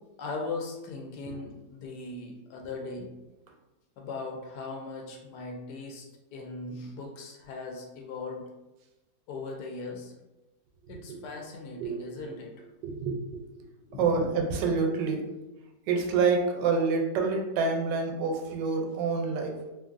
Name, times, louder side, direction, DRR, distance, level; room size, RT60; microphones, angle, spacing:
voice 1, 0.2-3.1 4.0-8.4 9.3-10.1 10.9-12.7 13.6-14.3, left 3 dB, 75° left, 1 dB, 1.1 m, -39 dB
voice 2, 12.8-13.2 14.0-15.2 15.9-19.6, right 4 dB, 85° right, 3 dB, 1.2 m, -27 dB
2.8 x 2.6 x 2.4 m, 1.0 s
omnidirectional pair, 1.9 m